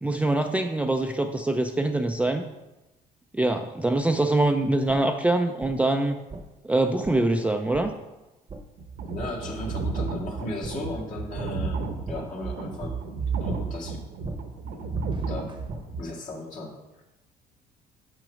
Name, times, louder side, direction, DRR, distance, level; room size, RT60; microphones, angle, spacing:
voice 1, 0.0-2.4 3.3-6.2 6.6-7.9, right 2 dB, 10° right, 5 dB, 0.4 m, -24 dB
sound 1, 4.9-5.0 5.6-5.7 6.3-6.4 7.0-7.2 7.7-7.9 8.5-8.6 9.2-9.3 9.9-10.0 10.6-10.7 11.4-11.5 12.0-12.2 12.8-12.9 13.5-13.6 14.2-14.4 14.9-15.8, right 3 dB, 30° right, 0.9 m, -37 dB
sound 2, 8.8-16.0, right 4 dB, 65° right, 0.9 m, -32 dB
voice 2, 9.0-13.0 13.4-14.0 14.7-14.8 15.2-15.6 16.0-16.7, left 2 dB, 50° left, -2 dB, 2.0 m, -35 dB
6.2 x 5.8 x 5.1 m, 1.0 s
cardioid pair, 110°, 17 cm